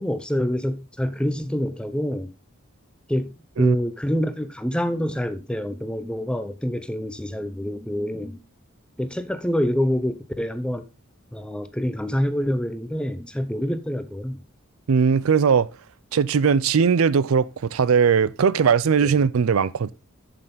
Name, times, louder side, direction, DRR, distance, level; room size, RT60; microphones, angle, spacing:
voice 1, 0.0-2.3 3.1-8.4 9.0-10.8 11.3-14.4 19.0-19.1, equal, 5° left, 0.7 m, -26 dB
voice 2, 14.9-15.7 16.1-19.9, right 6 dB, 80° right, 0.5 m, -19 dB
8.0 x 7.5 x 3.8 m
head